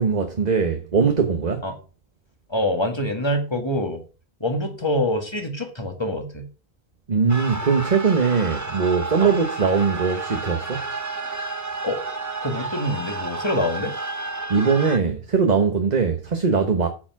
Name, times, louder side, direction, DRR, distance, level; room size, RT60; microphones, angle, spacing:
voice 1, 0.0-1.6 7.1-10.8 14.5-16.9, right 5 dB, 40° right, 1.3 m, -21 dB
voice 2, 2.5-4.0 4.4-6.5 9.2-9.3 11.8-12.0 12.4-13.9 14.4-14.5, left 1 dB, 25° left, 1.8 m, -25 dB
sound 1, 7.3-15.0, right 3 dB, 15° right, 1.1 m, -31 dB
8.8 x 7.0 x 5.9 m
omnidirectional pair, 1.1 m